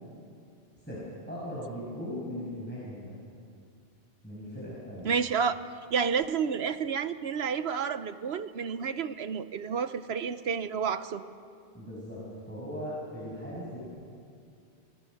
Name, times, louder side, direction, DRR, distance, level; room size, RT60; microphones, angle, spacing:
voice 1, 0.8-3.2 4.2-5.1 11.7-12.2 12.5-13.9, equal, 10° left, -7 dB, 5.9 m, -38 dB
voice 2, 5.0-5.6 5.9-11.3, right 6 dB, 70° right, 12 dB, 1.0 m, -30 dB
28.0 x 20.5 x 6.5 m, 2.4 s
omnidirectional pair, 1.1 m